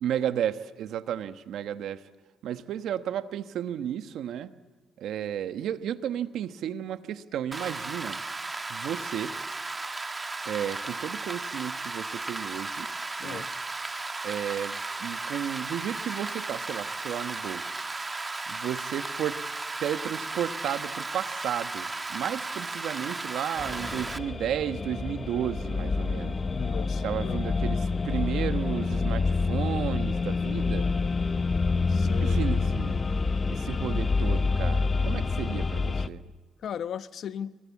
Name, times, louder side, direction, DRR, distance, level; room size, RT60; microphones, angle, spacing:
voice 1, 0.0-2.1 2.4-4.5 5.0-8.2 8.7-9.4 10.4-12.9 13.2-13.4 14.2-17.8 18.5-19.4 19.8-26.3 27.0-30.9 31.7-33.0 33.5-36.2, right 10 dB, 80° right, 1.2 m, -33 dB
Rain, 7.5-24.2, right 3 dB, 25° right, 1.4 m, -35 dB
sound 1, 23.6-36.1, left 4 dB, 30° left, 0.9 m, -27 dB
voice 2, 26.5-27.4 31.9-32.5 36.6-37.6, left 8 dB, 65° left, 0.9 m, -37 dB
28.0 x 22.0 x 8.5 m
cardioid pair, 90°, 0 cm